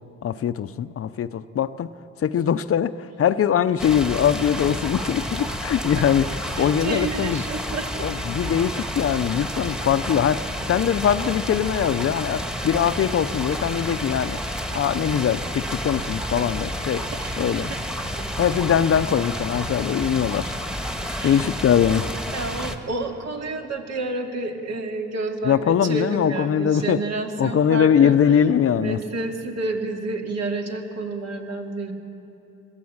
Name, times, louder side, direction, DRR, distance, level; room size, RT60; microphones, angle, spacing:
voice 1, 0.2-1.9 2.2-7.4 8.0-14.4 14.7-17.1 17.4-17.7 18.4-20.5 21.2-22.1 25.4-27.0 27.4-29.0, left 8 dB, 50° left, 13 dB, 0.6 m, -22 dB
sound 1, 3.8-22.8, equal, ahead, 1.5 m, -30 dB
voice 2, 6.5-8.1 17.1-17.8 18.2-18.3 21.1-21.5 22.3-28.2 28.7-31.9, right 3 dB, 60° right, 2 dB, 2.5 m, -30 dB
22.0 x 14.5 x 8.7 m, 3.0 s
cardioid pair, 90°, 30 cm